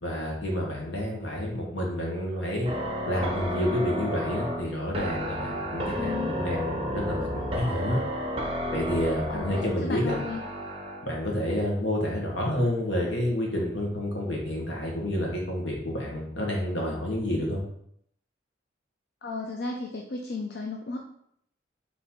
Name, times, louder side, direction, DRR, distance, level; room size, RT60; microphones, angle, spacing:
voice 1, 0.0-2.7 3.1-8.0 8.7-10.2 11.0-17.6, left 1 dB, 75° left, -2 dB, 1.3 m, -29 dB
sound 1, 2.6-11.1, equal, 30° right, 0.5 m, -32 dB
voice 2, 5.9-6.4 9.3-10.4 19.2-21.0, left 3 dB, 60° left, 1 dB, 0.4 m, -34 dB
3.7 x 2.9 x 4.4 m, 0.70 s
head